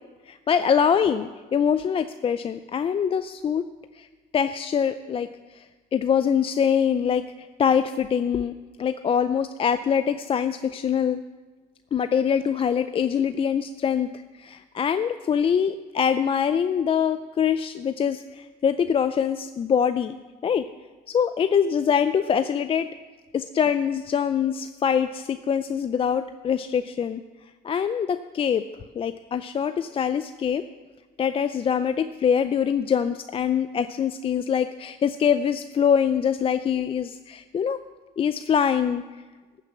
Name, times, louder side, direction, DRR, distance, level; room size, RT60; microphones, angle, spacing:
voice 1, 0.3-3.7 4.0-4.1 4.3-5.7 5.9-7.2 7.6-11.2 11.9-20.2 20.4-20.6 21.1-22.9 23.3-27.2 27.6-28.7 29.0-30.6 31.2-37.8 38.2-39.0, left 7 dB, 35° left, 11 dB, 0.4 m, -24 dB
14.0 x 6.6 x 7.1 m, 1.3 s
cardioid pair, 110°, 17 cm